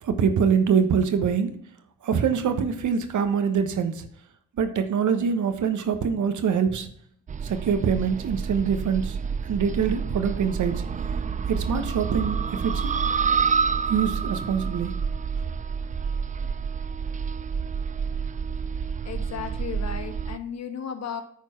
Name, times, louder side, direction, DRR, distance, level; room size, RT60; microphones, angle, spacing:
voice 1, 0.0-1.5 2.0-4.1 4.6-6.9 7.4-9.2 9.4-10.8 11.5-12.9 13.9-14.9, right 6 dB, 65° right, 9 dB, 1.2 m, -24 dB
sound 1, 7.3-20.4, right 6 dB, 25° right, 0.4 m, -28 dB
voice 2, 19.0-21.2, left 7 dB, 55° left, 6 dB, 1.5 m, -35 dB
9.5 x 4.4 x 5.7 m, 0.63 s
cardioid pair, 75°, 32 cm